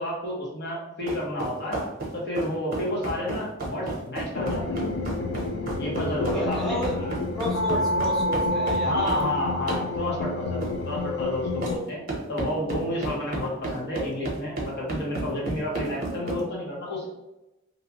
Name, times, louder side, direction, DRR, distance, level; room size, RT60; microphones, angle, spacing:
voice 1, 0.0-1.8 2.1-4.9 5.8-7.2 8.8-17.1, left 1 dB, 55° left, -5 dB, 1.0 m, -31 dB
sound 1, 1.1-9.3 9.7-9.9 10.6-10.8 11.6-11.8 12.1-16.4, right 2 dB, 45° right, 0.8 m, -32 dB
sound 2, 4.3-11.8, left 1 dB, 90° left, 0.4 m, -28 dB
voice 2, 6.3-7.0 7.3-9.3, equal, ahead, -5 dB, 0.4 m, -31 dB
2.8 x 2.2 x 2.8 m, 0.94 s
head